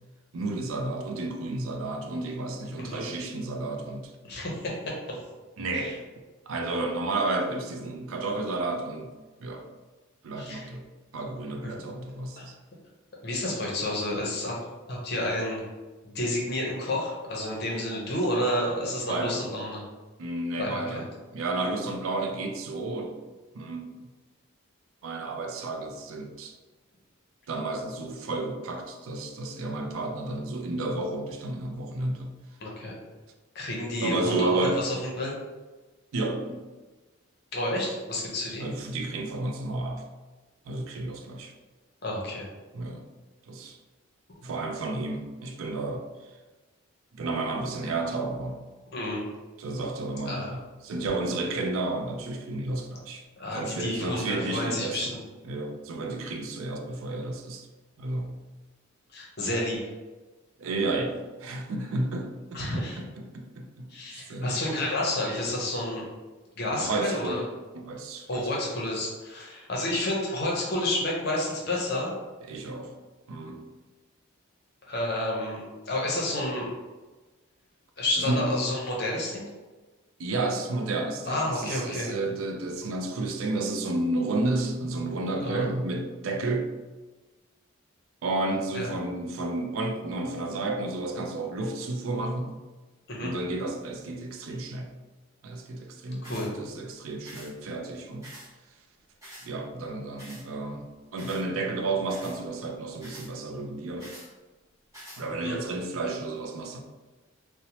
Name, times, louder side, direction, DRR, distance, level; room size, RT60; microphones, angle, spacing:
voice 1, 0.3-4.1 5.6-6.0 6.5-9.1 9.4-9.7 10.2-10.8 11.1-12.5 19.1-19.4 20.2-23.2 23.5-23.9 25.0-26.6 27.5-32.3 34.0-34.8 36.1-36.7 38.6-40.0 40.7-41.5 42.7-43.1 43.5-43.8 44.4-46.1 47.1-48.6 49.6-53.2 53.5-55.2 55.5-57.7 58.0-58.3 60.6-62.8 63.2-63.9 64.3-64.6 66.8-68.5 72.5-73.0 73.3-73.7 78.3-78.7 80.2-86.7 88.2-92.6 93.2-94.9 95.4-98.3 99.4-104.1 105.2-106.8, right 2 dB, 80° right, 4 dB, 0.4 m, -31 dB
voice 2, 4.2-5.2 5.7-5.9 10.3-10.7 11.6-11.8 12.4-12.5 13.2-14.6 14.9-15.6 16.0-19.8 20.6-21.0 32.6-33.0 33.5-35.3 37.5-38.7 42.0-42.5 48.9-49.2 50.3-50.5 53.4-55.2 59.1-59.8 62.5-63.0 63.9-66.1 66.6-67.4 68.3-72.1 74.9-76.7 78.0-79.5 81.3-82.1 85.4-85.7 88.7-88.9 93.1-93.3 96.2-96.5 105.4-105.6, left 1 dB, 50° left, -3 dB, 0.7 m, -30 dB
sound 1, 96.2-96.5 97.2-97.5 98.2-98.5 99.2-99.5 100.2-100.4 101.2-101.4 102.1-102.4 103.0-103.3 104.0-104.3 104.9-105.2, equal, 15° right, 0.8 m, -46 dB
2.7 x 2.1 x 2.8 m, 1.2 s
head